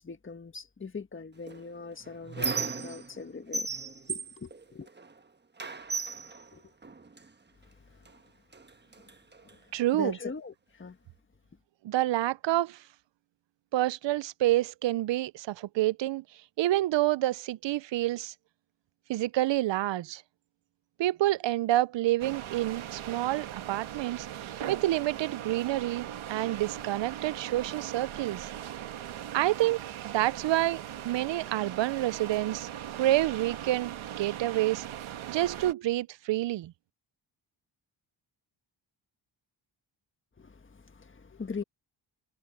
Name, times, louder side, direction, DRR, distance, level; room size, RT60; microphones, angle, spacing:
voice 1, 0.0-3.7 4.1-4.9 6.5-6.6 7.9-8.1 9.4-9.6 9.9-11.0 40.4-41.6, left 5 dB, 25° left, 1.5 m, -41 dB
Squeak, 1.5-3.2 3.5-5.2 5.6-7.3 8.1-8.2 8.5-9.5, right 4 dB, 20° right, 1.2 m, -36 dB
voice 2, 9.7-10.1 11.8-12.8 13.7-16.2 16.6-18.3 19.1-20.2 21.0-28.5 29.3-34.9 35.3-36.7, right 15 dB, 70° right, 0.6 m, -28 dB
sound 1, 22.2-35.7, right 11 dB, 90° right, 1.6 m, -40 dB
cardioid pair, 95°, 47 cm